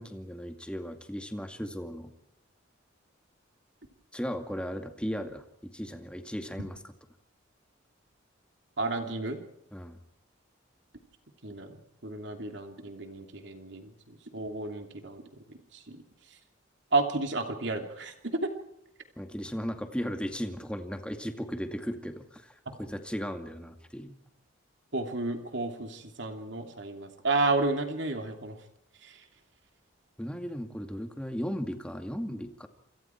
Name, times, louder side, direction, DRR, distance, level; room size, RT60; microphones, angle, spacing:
voice 1, 0.0-2.1 4.1-6.8 9.7-10.0 19.2-24.2 30.2-32.7, equal, 5° left, 6 dB, 2.3 m, -36 dB
voice 2, 8.8-9.4 11.4-11.8 12.0-15.2 15.7-16.0 16.9-18.5 22.7-22.8 24.9-28.6 29.0-29.2, right 3 dB, 65° right, 5 dB, 3.0 m, -32 dB
28.0 x 27.5 x 4.6 m, 0.79 s
head